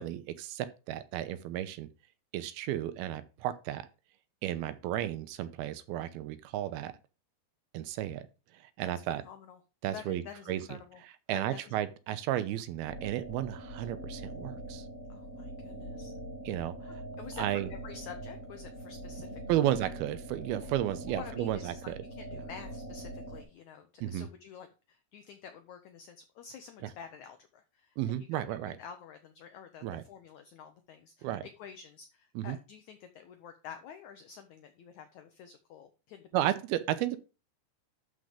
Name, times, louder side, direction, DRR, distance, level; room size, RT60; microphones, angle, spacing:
voice 1, 0.0-1.9 2.3-3.9 4.4-6.9 7.7-8.3 8.8-9.2 9.8-10.8 11.3-14.9 16.5-17.0 17.4-17.7 19.5-22.0 22.3-22.4 24.0-24.3 28.0-28.8 29.8-30.0 31.2-31.4 32.4-32.6 36.3-37.2, right 13 dB, 80° right, 2.6 m, -33 dB
voice 2, 9.1-9.6 9.9-11.0 11.3-11.7 15.1-16.1 16.8-19.7 20.6-20.7 21.1-36.4, left 7 dB, 85° left, 1.6 m, -49 dB
sound 1, 12.9-23.4, right 1 dB, 35° left, 1.3 m, -43 dB
12.0 x 4.9 x 5.0 m
omnidirectional pair, 4.5 m